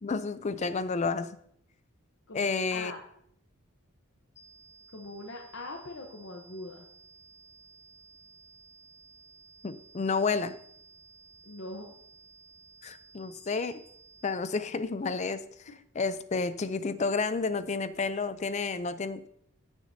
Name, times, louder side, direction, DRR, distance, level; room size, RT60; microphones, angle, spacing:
voice 1, 0.0-1.4 2.3-2.9 9.6-10.6 12.8-13.8 14.2-15.4 16.0-19.3, left 4 dB, 30° left, 13 dB, 0.4 m, -30 dB
voice 2, 2.3-3.0 4.9-6.9 11.4-11.9 18.5-18.6, left 2 dB, 55° left, 1 dB, 0.9 m, -42 dB
sound 1, 4.4-14.4, right 5 dB, 15° left, 1.1 m, -56 dB
16.0 x 6.4 x 2.7 m, 0.68 s
head